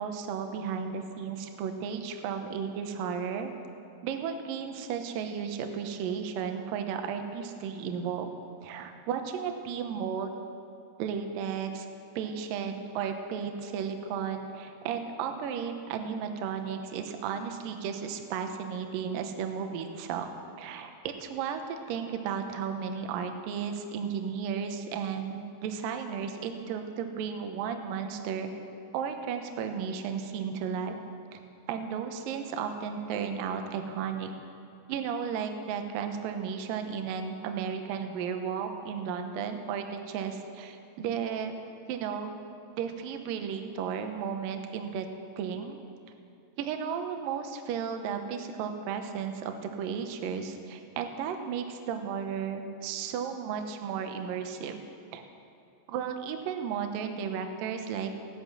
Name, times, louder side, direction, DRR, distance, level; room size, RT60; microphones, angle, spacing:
voice 1, 0.0-3.5 4.0-8.3 8.6-10.3 11.0-11.9 12.2-20.3 20.6-28.5 28.9-31.0 31.3-31.4 31.7-34.3 34.9-41.5 41.9-42.3 42.7-45.1 45.4-45.8 46.6-54.8 55.1-55.2 55.9-58.2, right 7 dB, 80° right, 6 dB, 2.0 m, -34 dB
15.5 x 11.0 x 6.2 m, 2.7 s
omnidirectional pair, 5.3 m